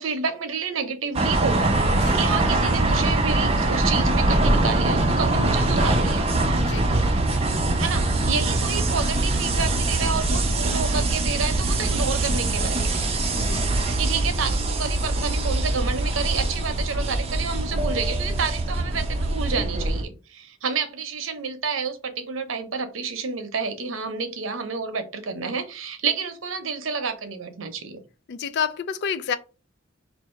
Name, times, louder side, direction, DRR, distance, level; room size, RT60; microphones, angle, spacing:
voice 1, 0.0-6.3 7.5-12.8 14.0-28.0, right 5 dB, 85° right, 0.8 m, -29 dB
sound 1, 1.1-20.0, right 2 dB, 30° right, 0.7 m, -23 dB
voice 2, 6.5-6.9 13.3-13.7 28.3-29.4, left 7 dB, 60° left, 0.4 m, -29 dB
2.9 x 2.7 x 4.3 m
head